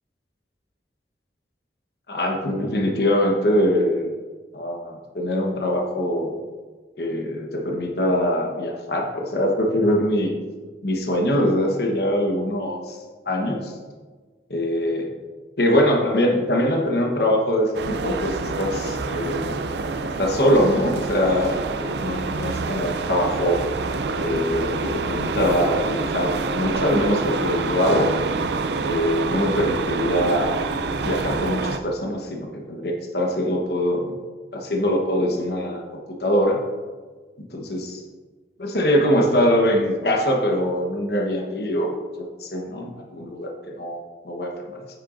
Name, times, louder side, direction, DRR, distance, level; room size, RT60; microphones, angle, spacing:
voice 1, 2.1-4.2 4.5-6.5 7.0-10.3 10.8-13.0 13.2-13.7 14.5-15.1 15.6-19.6 20.0-23.6 24.2-28.1 28.8-30.6 31.0-34.1 34.5-35.8 36.1-36.6 37.4-38.0 38.6-44.8, equal, 65° left, 1 dB, 1.1 m, -23 dB
sound 1, 17.7-31.8, right 3 dB, 70° right, 0.5 m, -27 dB
8.9 x 8.9 x 2.5 m, 1.4 s
head